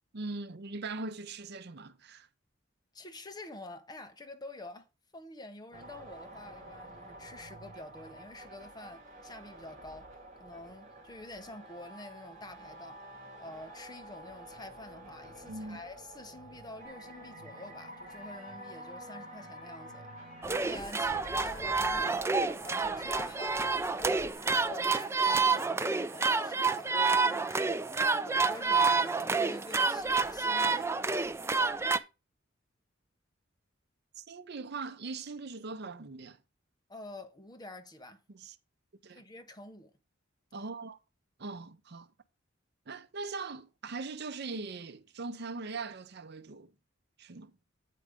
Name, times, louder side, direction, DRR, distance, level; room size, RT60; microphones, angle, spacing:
voice 1, 0.1-2.3 15.5-15.8 34.2-36.4 38.3-38.6 39.0-39.2 40.5-41.0 41.4-42.1 42.9-46.7 47.2-47.5, right 3 dB, 60° right, 0.7 m, -40 dB
voice 2, 2.9-4.9 5.1-10.1 10.4-13.0 13.4-20.1 20.4-31.0 36.9-38.2 39.1-39.9, left 2 dB, 20° left, 0.9 m, -48 dB
sound 1, 5.7-24.3, right 1 dB, 40° right, 2.5 m, -50 dB
sound 2, 16.8-23.5, left 2 dB, 40° left, 1.9 m, -56 dB
sound 3, 20.4-32.0, right 4 dB, 15° right, 0.4 m, -29 dB
8.5 x 4.9 x 4.9 m
head